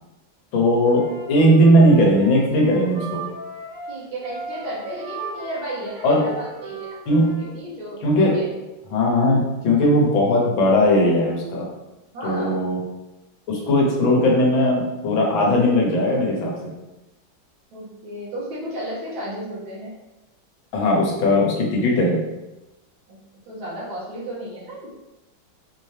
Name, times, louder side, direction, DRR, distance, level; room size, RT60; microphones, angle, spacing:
voice 1, 0.5-3.2 6.0-6.2 7.1-7.4 8.0-8.4 8.9-11.7 12.2-12.8 13.5-16.6 20.7-22.2, equal, 75° left, -2 dB, 1.8 m, -18 dB
Wind instrument woodwind instrument, 0.9-7.5, right 3 dB, 60° right, 1.5 m, -37 dB
voice 2, 3.9-8.0 8.3-8.5 12.1-12.6 17.7-19.9 23.1-23.2 23.5-24.9, right 1 dB, 80° right, -7 dB, 2.1 m, -33 dB
5.1 x 2.8 x 3.2 m, 1.0 s
omnidirectional pair, 2.2 m